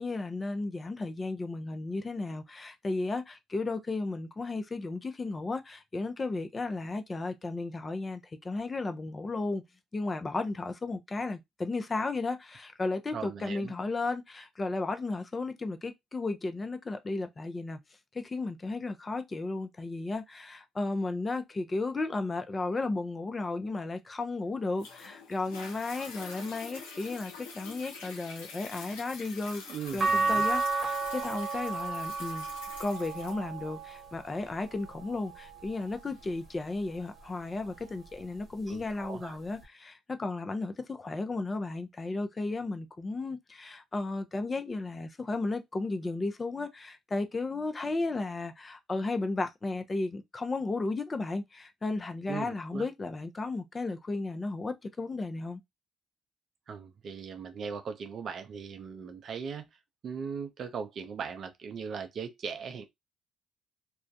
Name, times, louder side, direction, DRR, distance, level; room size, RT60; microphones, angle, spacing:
voice 1, 0.0-9.6 9.9-17.8 18.1-29.6 29.9-32.5 32.8-55.6, left 3 dB, 30° left, 0.5 m, -34 dB
voice 2, 13.1-13.7 29.7-30.4 38.7-39.4 52.3-52.9 56.7-59.7 60.0-62.8, right 6 dB, 55° right, 0.5 m, -39 dB
Toilet flush, 24.8-37.8 38.4-38.5, left 4 dB, 85° left, 0.6 m, -47 dB
sound 1, 30.0-36.3 36.9-38.2 39.6-39.7, right 3 dB, 35° right, 1.0 m, -34 dB
2.3 x 2.2 x 2.6 m
hypercardioid pair, 55°, 0 cm